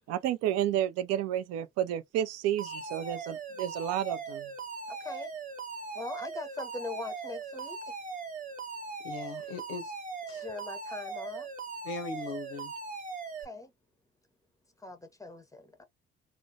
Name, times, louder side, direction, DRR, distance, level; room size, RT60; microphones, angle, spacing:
voice 1, 0.1-4.5, right 11 dB, 55° right, 0.4 m, -31 dB
Alarm, 2.6-13.4, right 4 dB, 25° right, 0.8 m, -40 dB
voice 2, 4.9-5.3 5.9-7.9 10.4-11.5 13.4-13.7 14.8-15.8, left 3 dB, 10° left, 0.6 m, -41 dB
voice 3, 9.0-9.9 10.3-10.5 11.8-12.7, left 4 dB, 75° left, 0.6 m, -39 dB
2.3 x 2.1 x 2.6 m
figure-of-eight pair, 50°, 31 cm